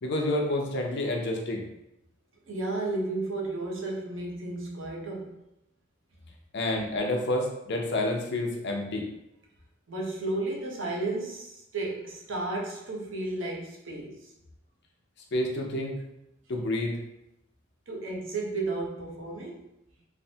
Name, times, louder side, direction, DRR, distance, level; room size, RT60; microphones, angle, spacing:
voice 1, 0.0-1.7 6.5-9.1 15.3-16.0 16.5-17.0, left 1 dB, 60° left, 1 dB, 0.5 m, -29 dB
voice 2, 2.5-5.4 9.9-14.3 17.9-19.6, right 2 dB, 70° right, -1 dB, 0.6 m, -33 dB
3.2 x 2.0 x 2.7 m, 0.85 s
head